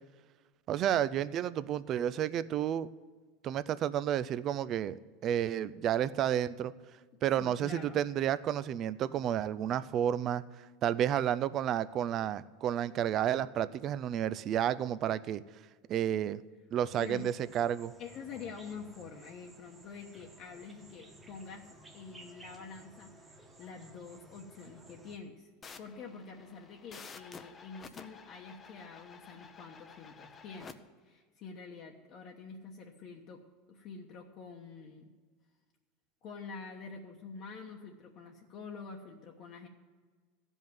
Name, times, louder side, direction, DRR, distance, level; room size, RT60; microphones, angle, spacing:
voice 1, 0.7-2.9 3.4-6.7 7.2-10.4 10.8-15.4 15.9-16.4 16.7-17.9, right 10 dB, 35° right, 16 dB, 0.4 m, -31 dB
voice 2, 7.4-8.0 16.9-17.3 18.0-21.7 21.9-25.5 25.8-30.8 31.0-33.4 33.7-35.1 36.2-39.7, left 5 dB, 45° left, 0 dB, 1.1 m, -47 dB
sound 1, 16.8-25.2, right 1 dB, 10° right, 1.3 m, -56 dB
sound 2, 25.6-30.7, left 5 dB, 20° left, 0.7 m, -51 dB
14.5 x 5.4 x 9.3 m, 1.4 s
supercardioid pair, 145°, 0 cm